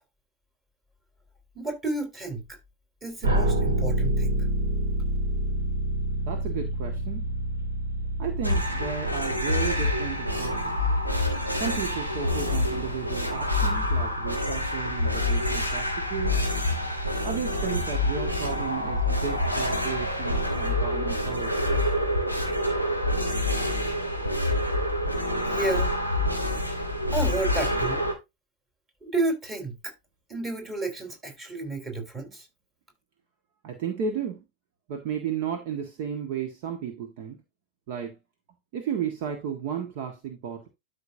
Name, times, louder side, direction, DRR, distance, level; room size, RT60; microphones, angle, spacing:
voice 1, 1.5-2.5 3.0-4.4 25.4-25.9 27.1-28.0 29.0-29.9 30.3-32.5, right 2 dB, 20° right, 4.1 m, -31 dB
sound 1, 3.2-10.1, right 1 dB, 65° right, 2.1 m, -27 dB
voice 2, 6.3-7.3 8.2-10.7 11.6-16.4 17.2-21.9 33.6-34.4 34.9-37.4 37.9-38.1 38.7-40.7, right 7 dB, 50° right, 1.5 m, -34 dB
sound 2, 8.4-28.1, left 1 dB, 85° right, 2.6 m, -27 dB
12.5 x 5.5 x 2.7 m
figure-of-eight pair, 90°, 0 cm